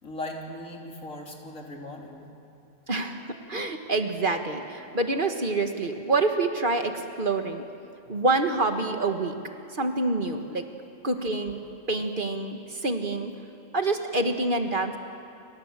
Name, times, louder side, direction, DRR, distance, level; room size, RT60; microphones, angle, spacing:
voice 1, 0.0-2.3 8.1-8.2, left 1 dB, 85° left, 0 dB, 3.9 m, -38 dB
voice 2, 2.9-7.6 8.1-9.4 9.7-10.6 11.0-11.6 11.9-13.3 13.7-15.0, right 2 dB, 40° right, 5 dB, 1.7 m, -27 dB
29.0 x 26.0 x 7.6 m, 2.6 s
omnidirectional pair, 1.3 m